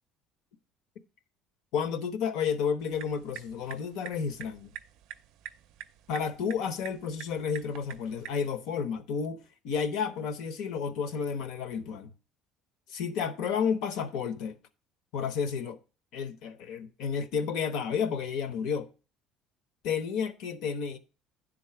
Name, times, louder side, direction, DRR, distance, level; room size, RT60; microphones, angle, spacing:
voice 1, 1.7-4.7 6.1-12.1 12.9-14.6 15.1-15.8 16.1-18.9 19.8-21.0, left 6 dB, 60° left, 0.9 m, -31 dB
sound 1, 2.8-8.5, right 11 dB, 60° right, 0.5 m, -47 dB
10.5 x 3.8 x 5.7 m
cardioid pair, 175°, 0 cm